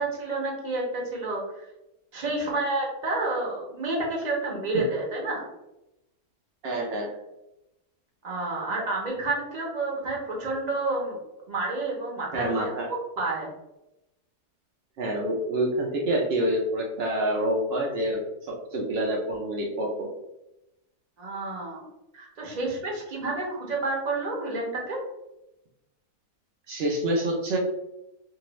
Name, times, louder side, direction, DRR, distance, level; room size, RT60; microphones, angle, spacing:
voice 1, 0.0-1.7 2.1-5.5 8.2-11.2 11.5-13.5 21.2-21.8 22.1-25.0, right 2 dB, 40° right, -2 dB, 0.6 m, -30 dB
voice 2, 6.6-7.1 12.3-12.9 15.0-20.1 26.7-27.6, right 1 dB, 85° right, -2 dB, 0.5 m, -27 dB
2.7 x 2.4 x 3.0 m, 0.92 s
omnidirectional pair, 1.7 m